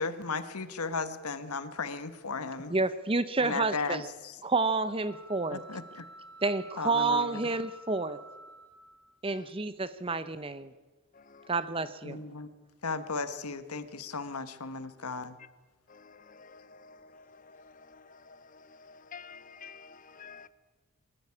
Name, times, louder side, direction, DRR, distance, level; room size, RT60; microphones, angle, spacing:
voice 1, 0.0-2.7 3.4-4.4 5.5-6.0 6.8-7.4 12.0-12.5 12.8-15.4, left 4 dB, 90° left, 11 dB, 1.4 m, -35 dB
voice 2, 2.7-4.1 4.4-5.6 6.4-8.2 9.2-10.7 11.5-12.2, right 3 dB, 25° right, 14 dB, 0.8 m, -29 dB
sound 1, 5.1-9.1, right 1 dB, 5° left, 4.1 m, -50 dB
voice 3, 11.1-11.6 15.9-20.5, left 5 dB, 35° left, 13 dB, 0.8 m, -51 dB
23.0 x 13.5 x 9.8 m, 1.3 s
head